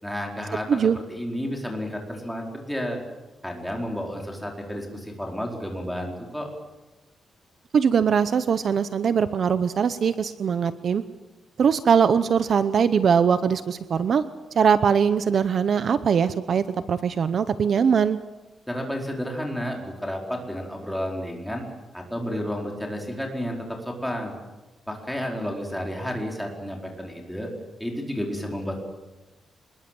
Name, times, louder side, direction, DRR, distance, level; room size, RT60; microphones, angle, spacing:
voice 1, 0.0-3.0 3.4-6.5 18.7-21.6 21.9-24.3 24.9-27.5 27.8-28.8, equal, ahead, 0 dB, 4.7 m, -31 dB
voice 2, 7.7-11.0 11.6-14.2 14.5-18.2, right 7 dB, 50° right, 12 dB, 0.8 m, -21 dB
26.5 x 21.0 x 7.8 m, 1.1 s
wide cardioid pair, 165°, 0 cm